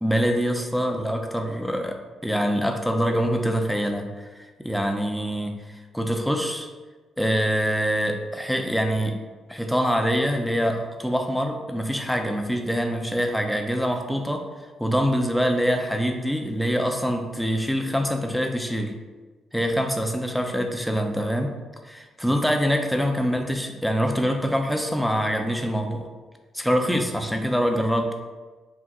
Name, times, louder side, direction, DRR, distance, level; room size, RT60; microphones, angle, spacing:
voice 1, 0.0-5.6 5.9-6.7 7.2-9.2 9.5-14.5 14.8-18.9 19.5-21.5 21.8-26.1 26.5-28.1, equal, ahead, 3 dB, 0.5 m, -25 dB
5.1 x 2.5 x 3.6 m, 1.3 s
cardioid pair, 90°, 0 cm